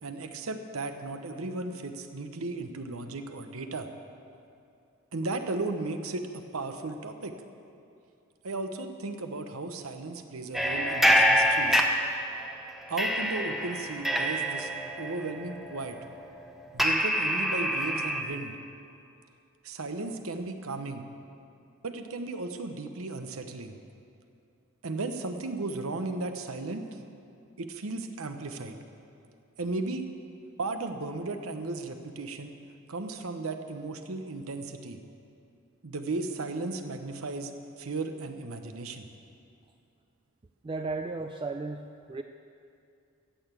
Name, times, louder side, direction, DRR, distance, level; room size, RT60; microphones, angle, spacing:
voice 1, 0.0-3.9 5.1-7.3 8.4-11.8 12.9-14.7 15.0-16.0 16.7-18.6 19.6-21.0 21.8-23.8 24.8-26.9 27.6-28.8 29.6-30.1 30.6-32.6 32.9-35.0 35.8-37.5 37.8-39.1, right 3 dB, 80° right, 7 dB, 0.9 m, -35 dB
sound 1, 10.5-12.5 13.0-18.2, equal, ahead, 0.7 m, -26 dB
voice 2, 40.6-42.2, right 3 dB, 25° right, 6 dB, 0.3 m, -35 dB
15.0 x 6.9 x 8.2 m, 2.6 s
head